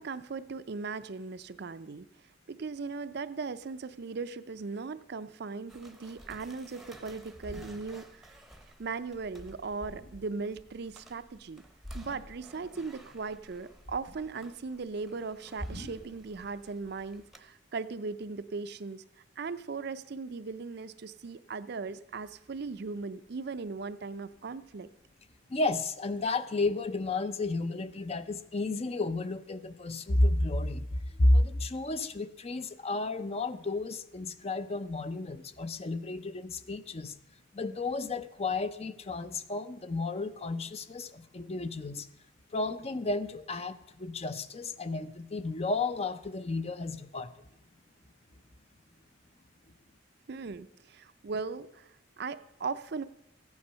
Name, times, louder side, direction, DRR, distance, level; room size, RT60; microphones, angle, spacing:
voice 1, 0.0-2.1 2.5-8.4 8.8-11.6 11.9-19.0 19.4-24.9 50.3-53.0, right 4 dB, 55° right, 13 dB, 0.5 m, -38 dB
sound 1, 5.7-17.4, right 1 dB, ahead, 0.8 m, -56 dB
sound 2, 6.2-6.6 7.2-8.2 8.6-8.8 9.1-10.4 11.8-12.6 12.9-14.5 15.6-16.2, equal, 75° left, 6.5 m, -46 dB
voice 2, 25.5-30.9 31.2-37.1 37.5-42.1 42.5-47.3, left 2 dB, 30° left, 12 dB, 0.5 m, -31 dB
14.5 x 9.6 x 5.5 m, 0.85 s
head